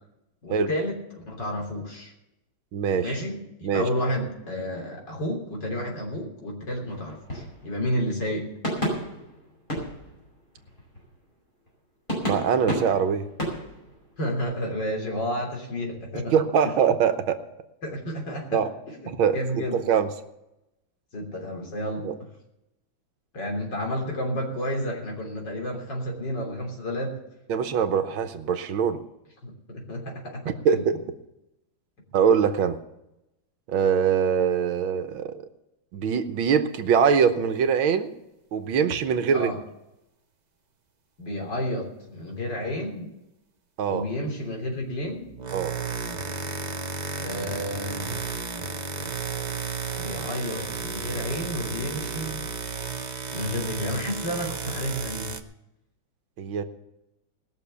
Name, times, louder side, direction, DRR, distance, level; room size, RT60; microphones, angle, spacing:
voice 1, 0.4-2.1 3.0-8.5 14.2-16.7 17.8-18.6 18.9-19.8 21.1-22.3 23.3-27.2 29.4-30.8 39.3-39.6 41.2-43.1 43.9-45.3 47.2-48.2 49.9-52.4 53.3-55.3, equal, 60° left, 0 dB, 4.0 m, -31 dB
voice 2, 2.7-3.1 3.6-3.9 12.3-13.3 16.3-17.4 18.5-18.7 19.1-19.4 19.7-20.1 22.0-22.1 27.5-29.0 30.5-31.0 32.1-32.8 33.7-35.4 35.9-38.1 38.5-39.5 43.8-44.0 45.5-45.7 56.4-56.6, right 7 dB, 80° right, 9 dB, 1.8 m, -23 dB
sound 1, 6.9-8.4 8.6-11.3 11.7-11.8 12.1-14.4, equal, 25° left, 5.6 m, -33 dB
sound 2, 38.9-39.1 45.2-55.4, right 5 dB, 55° right, 0.4 m, -33 dB
19.5 x 6.9 x 6.9 m, 0.89 s
omnidirectional pair, 2.2 m